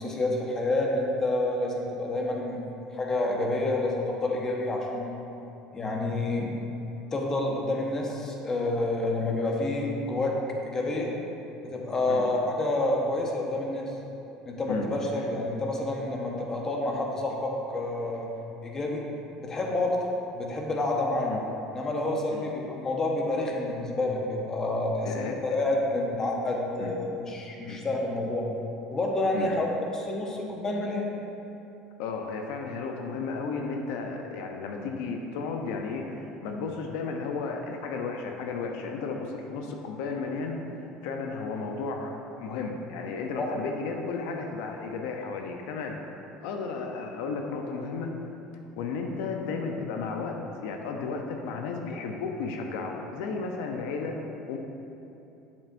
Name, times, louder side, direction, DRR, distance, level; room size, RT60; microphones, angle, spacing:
voice 1, 0.0-2.6 2.9-5.2 5.7-6.5 7.1-10.4 10.6-11.1 11.6-13.9 14.5-18.3 18.6-19.0 19.4-20.0 20.3-21.3 21.7-28.5 28.9-29.7 29.9-31.1 43.4-43.5, left 2 dB, 25° left, -1 dB, 1.0 m, -28 dB
voice 2, 25.0-25.4 26.8-26.9 27.7-27.8 29.3-29.5 32.0-40.6 41.0-46.0 46.4-48.1 48.8-50.4 50.6-54.1 54.5-54.6, left 4 dB, 80° left, 2 dB, 0.6 m, -33 dB
7.5 x 7.4 x 2.6 m, 2.8 s
supercardioid pair, 120°, 2 cm